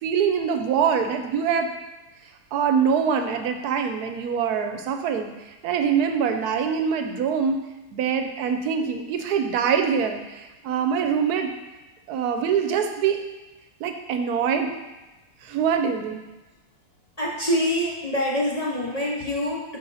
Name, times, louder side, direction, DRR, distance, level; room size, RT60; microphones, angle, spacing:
voice 1, 0.0-1.7 2.5-7.6 7.9-11.5 12.1-13.2 13.8-14.7 15.4-16.2, right 7 dB, 85° right, 6 dB, 1.1 m, -24 dB
voice 2, 17.2-19.8, left 1 dB, 35° left, -5 dB, 0.7 m, -25 dB
5.5 x 5.2 x 4.0 m, 1.1 s
omnidirectional pair, 1.6 m